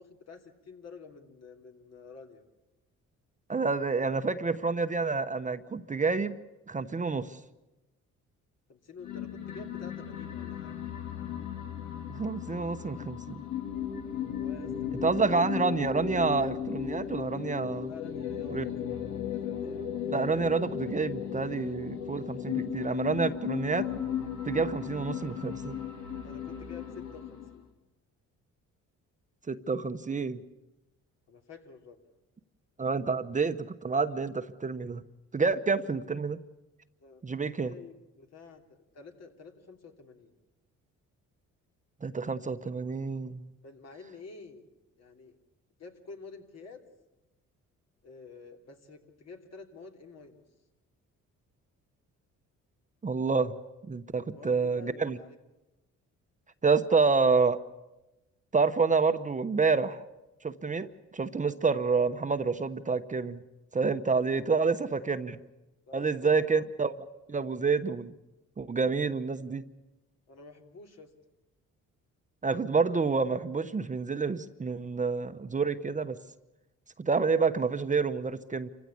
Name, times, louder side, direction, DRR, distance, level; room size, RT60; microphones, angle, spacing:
voice 1, 0.0-2.4 8.7-10.8 14.3-15.0 17.9-18.7 19.0-19.8 26.2-27.7 31.3-32.0 37.0-37.2 37.5-38.6 38.9-40.3 43.6-44.7 45.0-45.4 45.8-46.8 48.0-50.4 54.2-55.4 64.6-65.5 65.9-66.6 70.3-71.1, left 4 dB, 60° left, 3 dB, 3.1 m, -49 dB
voice 2, 3.5-6.4 6.7-7.4 12.1-13.4 15.0-17.9 18.5-18.6 20.1-23.9 24.4-25.8 29.5-30.4 32.8-35.0 35.3-36.4 37.2-37.7 42.0-43.5 53.0-53.5 53.8-55.2 56.6-57.6 58.5-60.0 60.4-60.9 61.1-63.4 63.7-65.4 65.9-66.9 67.3-68.1 68.6-69.6 72.4-76.2 77.0-78.7, right 4 dB, 25° right, 10 dB, 0.9 m, -28 dB
sound 1, 9.0-27.6, left 9 dB, 75° left, 3.2 m, -36 dB
27.5 x 15.5 x 8.5 m, 1.0 s
cardioid pair, 90°, 30 cm